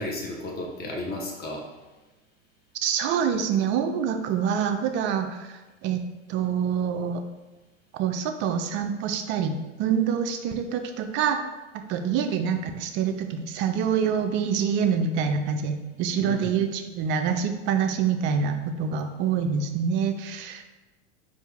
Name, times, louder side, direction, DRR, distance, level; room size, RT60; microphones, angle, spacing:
voice 1, 0.0-1.6 16.2-16.5, left 1 dB, 25° left, -1 dB, 1.0 m, -33 dB
voice 2, 2.8-6.0 6.3-7.2 7.9-11.4 11.9-20.6, right 7 dB, 30° right, 6 dB, 0.4 m, -26 dB
4.4 x 2.5 x 3.4 m, 1.2 s
hypercardioid pair, 100°, 38 cm